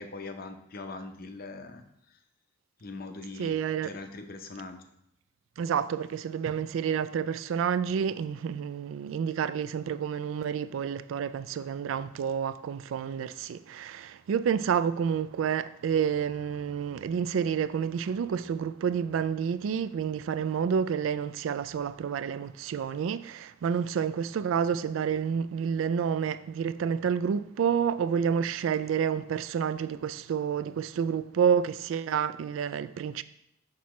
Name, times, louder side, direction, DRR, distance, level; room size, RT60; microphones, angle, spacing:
voice 1, 0.0-1.8 2.8-3.5 3.8-4.8, left 3 dB, 50° left, 0.6 m, -41 dB
voice 2, 3.4-3.9 5.6-33.2, right 7 dB, 85° right, 0.3 m, -29 dB
6.0 x 5.8 x 3.1 m
head